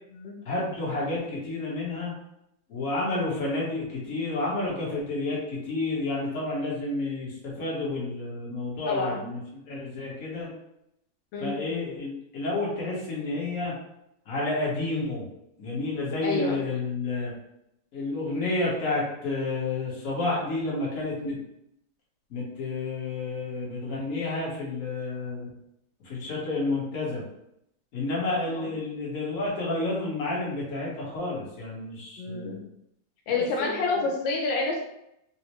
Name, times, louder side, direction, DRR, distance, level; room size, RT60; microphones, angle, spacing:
voice 1, 0.4-2.1 2.7-10.5 11.4-13.7 14.3-15.3 15.6-17.3 17.9-21.4 22.3-25.5 26.0-27.2 27.9-32.6 33.3-34.0, left 2 dB, 50° left, -5 dB, 1.3 m, -30 dB
voice 2, 8.9-9.2 11.3-11.6 16.2-16.6 28.6-28.7 32.2-32.6 33.3-34.8, left 3 dB, 85° left, 1 dB, 1.3 m, -28 dB
4.2 x 2.1 x 2.9 m, 0.81 s
omnidirectional pair, 2.1 m